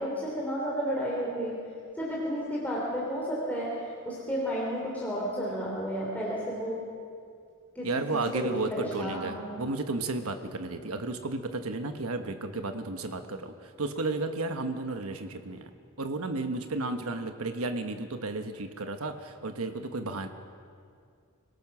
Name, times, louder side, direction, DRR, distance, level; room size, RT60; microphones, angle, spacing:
voice 1, 0.0-1.5 2.0-6.8 7.7-9.5, equal, 10° left, -5 dB, 3.4 m, -32 dB
voice 2, 7.8-15.7 16.0-20.3, right 2 dB, 90° right, 7 dB, 1.2 m, -33 dB
25.0 x 17.5 x 6.1 m, 2.2 s
head